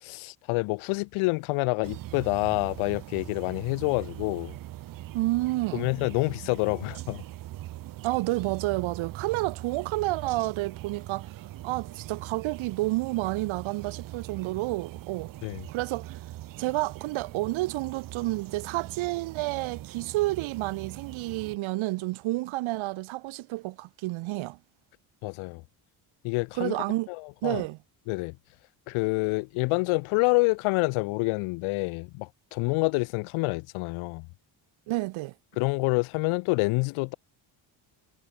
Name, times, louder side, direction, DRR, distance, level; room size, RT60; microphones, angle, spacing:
voice 1, 0.0-4.5 5.7-7.2 15.4-15.6 25.2-25.6 26.2-26.8 27.1-27.6 28.1-28.4 28.9-34.3 35.6-37.1, left 26 dB, 85° left, 0.7 m, -27 dB
sound 1, 1.8-21.6, right 15 dB, 45° right, 0.5 m, -41 dB
voice 2, 5.1-5.9 8.0-15.3 15.7-16.2 16.6-24.6 26.6-27.1 27.4-27.8 34.9-35.3, right 19 dB, 80° right, 1.3 m, -30 dB
cardioid pair, 95°, 48 cm